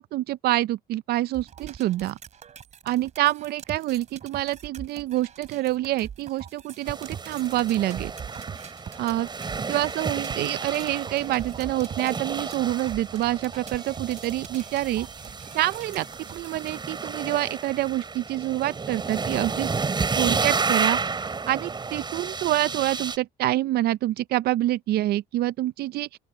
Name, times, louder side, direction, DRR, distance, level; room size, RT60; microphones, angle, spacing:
voice 1, 0.0-2.2 2.9-8.1 9.0-9.3 9.7-15.1 15.5-19.7 20.2-26.2, right 15 dB, 70° right, 0.5 m, -27 dB
sound 1, 1.3-16.8, right 7 dB, 45° right, 3.1 m, -43 dB
sound 2, 6.9-23.2, right 4 dB, 25° right, 4.7 m, -31 dB
open air
cardioid pair, 110°, 17 cm